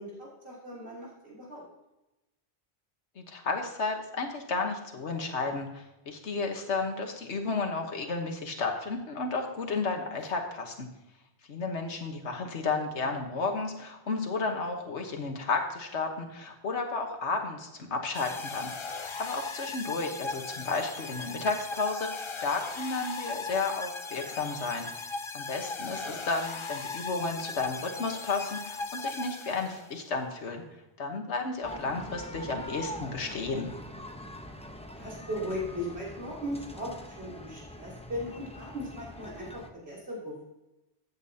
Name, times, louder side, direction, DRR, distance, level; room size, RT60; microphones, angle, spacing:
voice 1, 0.0-1.6 26.0-26.2 35.0-40.4, equal, 70° right, -6 dB, 3.2 m, -38 dB
voice 2, 3.2-10.9 11.5-18.7 19.0-24.9 25.3-30.6 31.0-33.7, left 4 dB, 90° left, 3 dB, 1.5 m, -32 dB
sound 1, 18.1-30.0, left 4 dB, 45° left, 0.4 m, -38 dB
sound 2, 31.6-39.7, equal, 5° left, 0.7 m, -44 dB
15.0 x 8.7 x 2.8 m, 0.96 s
omnidirectional pair, 1.1 m